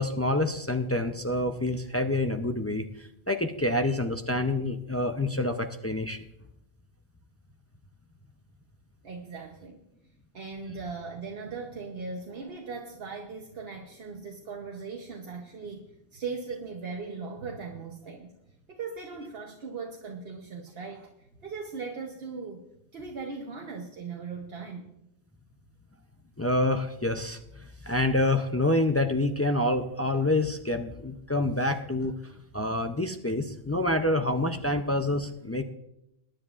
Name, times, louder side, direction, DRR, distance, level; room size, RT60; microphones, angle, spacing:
voice 1, 0.0-2.9 3.3-6.2 26.4-27.4 27.8-32.1 32.5-35.6, left 1 dB, 25° left, 6 dB, 0.3 m, -27 dB
voice 2, 9.0-9.8 10.3-18.3 18.7-22.6 22.9-24.9, right 4 dB, 70° right, 2 dB, 1.2 m, -39 dB
21.5 x 10.0 x 2.5 m, 0.84 s
omnidirectional pair, 1.1 m